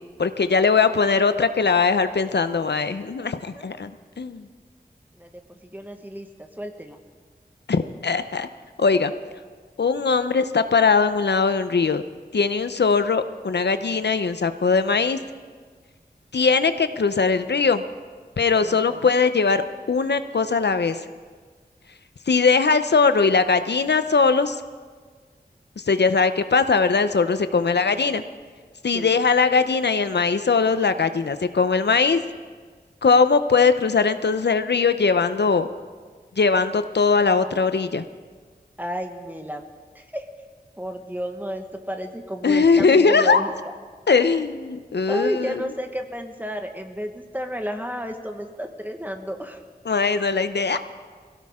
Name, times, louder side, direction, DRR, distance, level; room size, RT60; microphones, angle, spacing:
voice 1, 0.2-4.5 7.7-8.5 8.8-9.1 9.8-12.0 12.3-15.2 16.3-17.8 18.4-21.0 22.3-24.6 25.8-28.2 28.8-32.2 33.0-35.7 36.4-38.0 42.4-43.4 44.1-45.6 49.9-50.8, left 4 dB, 85° left, 10 dB, 0.7 m, -20 dB
voice 2, 5.2-7.0 18.6-19.1 27.6-27.7 28.9-29.1 38.8-39.6 39.9-40.3 40.8-43.7 45.1-49.6, equal, 10° right, 5 dB, 1.4 m, -32 dB
22.5 x 16.5 x 3.7 m, 1.5 s
wide cardioid pair, 55°, 17 cm